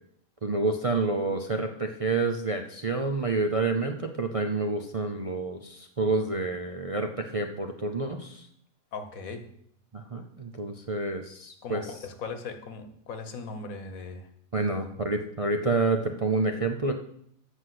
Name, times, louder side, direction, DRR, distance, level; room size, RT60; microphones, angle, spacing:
voice 1, 0.4-8.5 9.9-11.8 14.5-16.9, right 3 dB, 40° right, 4 dB, 0.5 m, -28 dB
voice 2, 8.9-9.5 11.6-14.3, left 4 dB, 75° left, 8 dB, 1.5 m, -38 dB
8.1 x 6.2 x 7.7 m, 0.69 s
omnidirectional pair, 1.5 m